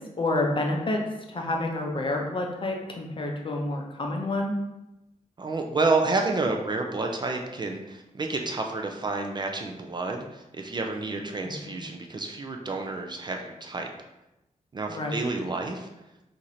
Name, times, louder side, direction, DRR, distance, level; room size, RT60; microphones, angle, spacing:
voice 1, 0.2-1.0 1.3-4.5 11.7-11.8 14.9-15.2, left 2 dB, 40° left, 1 dB, 0.6 m, -28 dB
voice 2, 5.4-13.9 14.7-15.9, right 3 dB, 35° right, 2 dB, 0.4 m, -29 dB
3.0 x 2.5 x 4.1 m, 0.95 s
wide cardioid pair, 115°, 14 cm